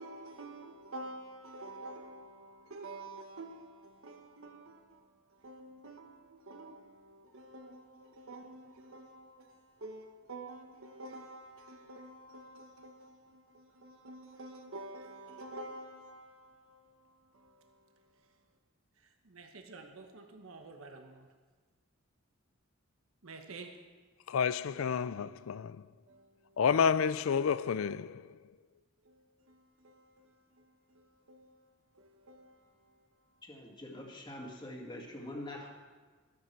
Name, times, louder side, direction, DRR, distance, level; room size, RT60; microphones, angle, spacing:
voice 1, 0.0-18.1 19.0-21.3 23.2-23.9 26.1-26.6 29.0-31.7 31.9-33.1, right 2 dB, 80° right, 1.1 m, -49 dB
voice 2, 24.3-25.8 26.6-28.2, left 6 dB, 80° left, 0.4 m, -29 dB
voice 3, 33.4-35.7, left 1 dB, 20° left, 2.0 m, -44 dB
13.0 x 12.5 x 4.5 m
head